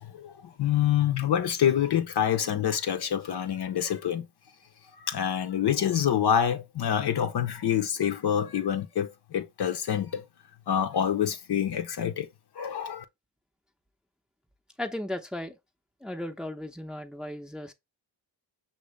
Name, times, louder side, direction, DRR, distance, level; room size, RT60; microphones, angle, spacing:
voice 1, 0.0-4.3 5.0-10.2 10.7-12.3 12.6-13.0, left 9 dB, 55° left, 0.7 m, -26 dB
voice 2, 14.8-15.6 16.0-17.7, left 1 dB, ahead, 0.7 m, -36 dB
6.0 x 2.7 x 3.1 m
cardioid pair, 60°, 47 cm